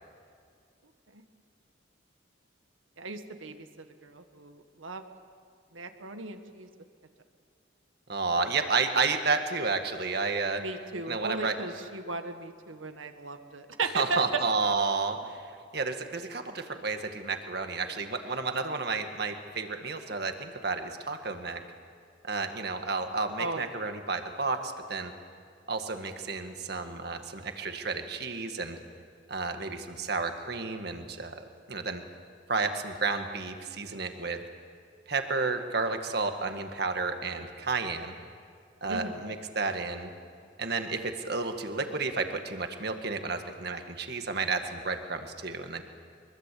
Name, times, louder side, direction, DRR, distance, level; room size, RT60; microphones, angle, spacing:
voice 1, 3.0-5.0 5.7-6.7 10.6-14.4 23.4-23.7 38.9-39.2, right 3 dB, 85° right, 7 dB, 1.7 m, -36 dB
voice 2, 8.1-10.6 11.1-11.6 14.0-15.4 15.7-21.6 22.2-25.1 25.7-28.8 29.3-32.0 32.5-34.4 35.1-38.1 38.8-40.1 40.6-45.8, right 4 dB, 55° right, 6 dB, 1.8 m, -31 dB
24.0 x 22.5 x 8.5 m, 2.2 s
head